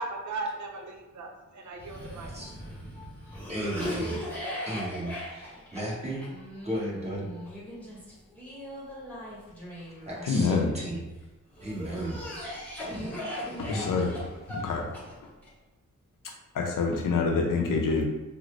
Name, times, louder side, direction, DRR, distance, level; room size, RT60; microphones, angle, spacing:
voice 1, 0.0-2.3, right 2 dB, 65° right, 2 dB, 0.6 m, -37 dB
Cough, 1.8-11.0 11.6-15.5, equal, 5° left, 1.1 m, -39 dB
voice 2, 2.3-2.7 3.5-4.2 4.6-6.2 6.6-7.3 10.1-11.1 11.6-12.2, right 1 dB, 20° right, -6 dB, 1.3 m, -34 dB
voice 3, 10.2-10.7 13.6-14.9 16.5-18.0, left 4 dB, 90° left, 1 dB, 0.6 m, -27 dB
3.8 x 2.0 x 3.2 m, 1.1 s
cardioid pair, 70°, 31 cm